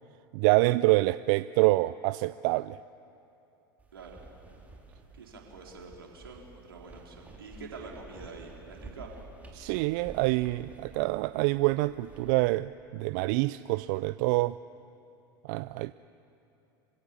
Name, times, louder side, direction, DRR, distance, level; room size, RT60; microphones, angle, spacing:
voice 1, 0.3-2.8 9.5-14.6 15.4-15.9, right 20 dB, 55° right, 17 dB, 0.4 m, -26 dB
sound 1, 3.8-12.3, right 3 dB, 10° right, 3.5 m, -51 dB
voice 2, 5.2-9.1, right 4 dB, 80° right, -1 dB, 3.8 m, -46 dB
26.0 x 16.5 x 7.1 m, 2.8 s
hypercardioid pair, 85°, 12 cm